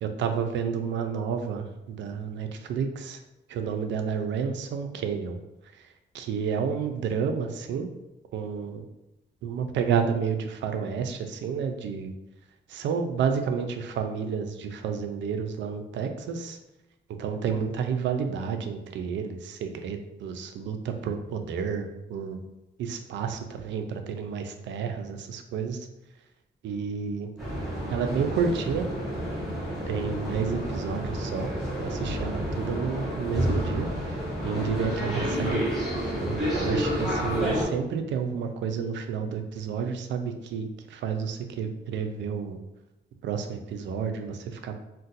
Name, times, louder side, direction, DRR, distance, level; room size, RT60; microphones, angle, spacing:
voice 1, 0.0-3.2 3.5-5.4 6.1-7.9 8.3-8.8 9.4-12.1 12.7-16.6 17.2-22.4 22.8-25.8 26.6-27.3 27.9-28.9 29.9-31.5 31.8-33.9 34.4-35.6 36.2-42.6 43.2-44.9, right 6 dB, 80° right, 6 dB, 0.4 m, -30 dB
sound 1, 27.4-37.6, equal, ahead, 1.0 m, -30 dB
2.5 x 2.2 x 3.9 m, 0.96 s
wide cardioid pair, 160°, 19 cm